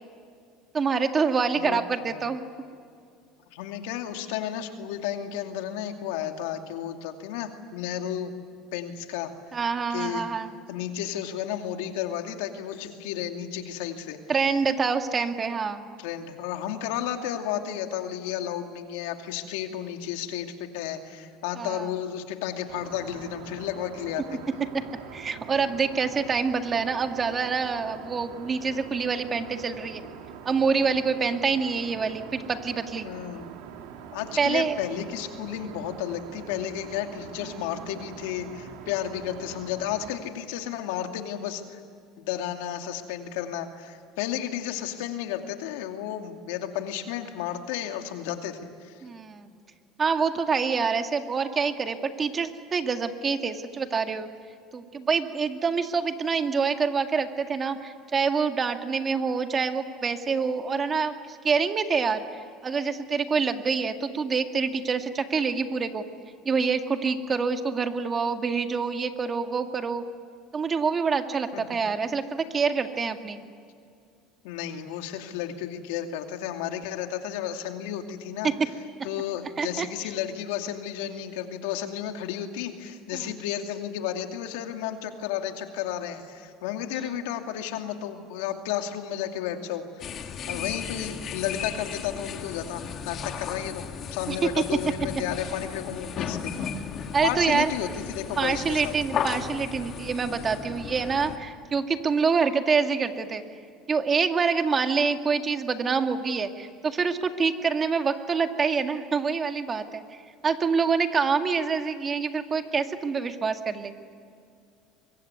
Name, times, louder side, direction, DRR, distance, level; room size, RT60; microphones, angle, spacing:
voice 1, 0.7-2.4 9.5-10.5 14.3-15.8 21.6-21.9 24.7-24.9 25.1-30.0 30.5-33.1 34.4-34.8 49.0-49.5 50.0-54.3 54.7-62.2 62.6-66.0 66.5-70.0 70.5-73.4 78.4-78.5 79.6-79.9 83.1-83.3 86.9-87.1 90.5-90.6 94.3-94.4 97.1-97.7 98.4-103.4 103.9-113.9, right 5 dB, 30° right, 7 dB, 2.0 m, -26 dB
voice 2, 1.5-2.2 3.5-8.3 8.7-9.3 9.9-10.3 10.7-14.2 16.0-24.4 33.0-33.5 34.1-41.8 42.2-49.0 71.5-71.6 74.4-78.5 79.0-93.8 94.1-96.7 97.2-98.9, left 10 dB, 85° left, 5 dB, 2.5 m, -33 dB
Aircraft, 22.7-40.2, right 8 dB, 80° right, 2.9 m, -44 dB
sound 1, 90.0-101.4, left 7 dB, 45° left, 2.3 m, -35 dB
24.5 x 23.0 x 9.7 m, 2.3 s
supercardioid pair, 110°, 0 cm